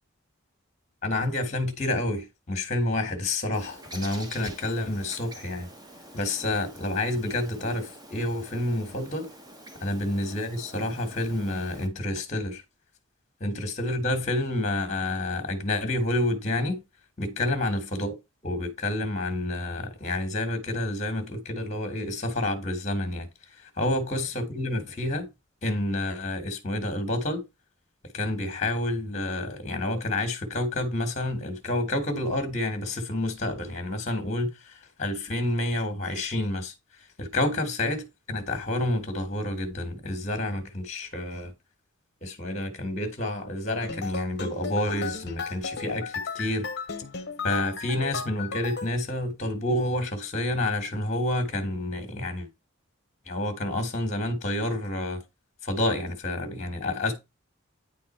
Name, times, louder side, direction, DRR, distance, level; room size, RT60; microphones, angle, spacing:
voice 1, 1.0-5.7 6.1-9.3 9.8-12.6 13.4-16.8 17.2-18.1 18.4-23.3 23.8-25.3 25.6-27.4 28.1-36.7 37.2-38.0 38.3-41.5 42.2-46.7 47.4-52.5 53.3-55.2 55.6-57.1, left 1 dB, 35° left, 1.5 m, -29 dB
Bird, 3.5-11.9, right 1 dB, 20° right, 1.0 m, -46 dB
sound 1, 43.8-48.9, left 4 dB, 50° left, 0.8 m, -35 dB
9.3 x 4.0 x 4.3 m
head